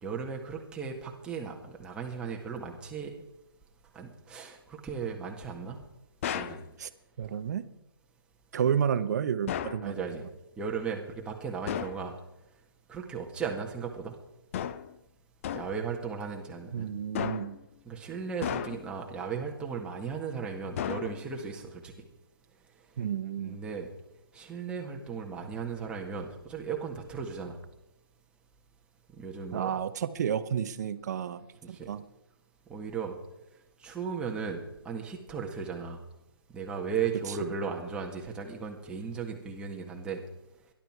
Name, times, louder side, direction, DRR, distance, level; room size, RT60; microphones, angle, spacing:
voice 1, 0.0-3.1 3.9-5.8 6.3-6.6 8.7-8.8 9.8-10.2 10.6-12.1 12.9-14.1 15.5-16.9 17.9-21.9 23.4-23.9 24.3-27.6 29.2-29.7 31.6-31.9 32.7-33.2 33.8-36.0 36.5-40.2, right 6 dB, 10° right, 1 dB, 1.9 m, -36 dB
sound 1, 6.2-6.7 9.5-9.9 11.7-12.0 14.5-14.9 15.4-15.8 17.1-17.6 18.4-19.0 20.8-21.4, left 9 dB, 35° left, 0.7 m, -34 dB
voice 2, 7.2-7.7 8.5-10.1 16.7-17.6 23.0-23.6 29.5-31.4 31.7-32.0 37.4-37.5, right 8 dB, 45° right, 13 dB, 1.0 m, -31 dB
20.0 x 12.0 x 4.7 m, 0.90 s
figure-of-eight pair, 145°, 13 cm